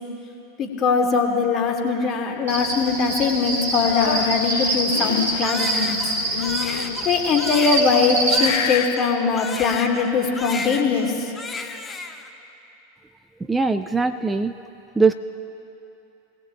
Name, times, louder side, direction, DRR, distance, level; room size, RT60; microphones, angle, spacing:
voice 1, 0.6-6.1 7.1-11.1, left 5 dB, 40° left, 1 dB, 2.1 m, -21 dB
Cricket, 2.5-8.4, right 2 dB, 75° right, 3.9 m, -25 dB
sound 1, 3.8-5.5 6.3-7.2 7.8-8.1 8.4-9.0 10.3-11.1, left 9 dB, 65° left, 0.7 m, -28 dB
Crying sobbing, 5.4-10.1 10.4-11.1 11.4-12.3, left 4 dB, 20° left, 1.0 m, -33 dB
voice 2, 13.5-14.5 15.0-15.1, right 4 dB, 15° right, 11 dB, 0.3 m, -20 dB
25.0 x 17.0 x 2.3 m, 2.8 s
hypercardioid pair, 90°, 0 cm